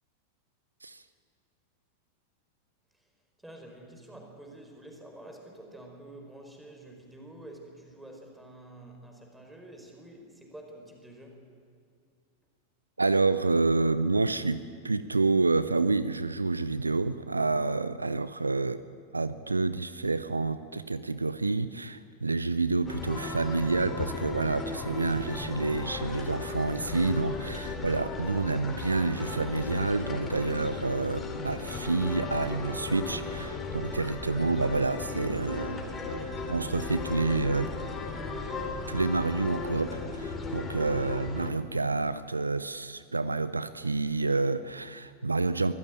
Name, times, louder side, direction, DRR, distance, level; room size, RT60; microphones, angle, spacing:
voice 1, 3.4-11.4, right 1 dB, 5° right, 2 dB, 4.7 m, -48 dB
voice 2, 13.0-18.8 19.1-35.8 36.1-37.7 38.9-45.7, right 3 dB, 80° right, 15 dB, 0.6 m, -28 dB
sound 1, 22.8-41.5, left 3 dB, 20° left, 3.6 m, -36 dB
24.5 x 15.0 x 8.9 m, 2.2 s
figure-of-eight pair, 90°, 0 cm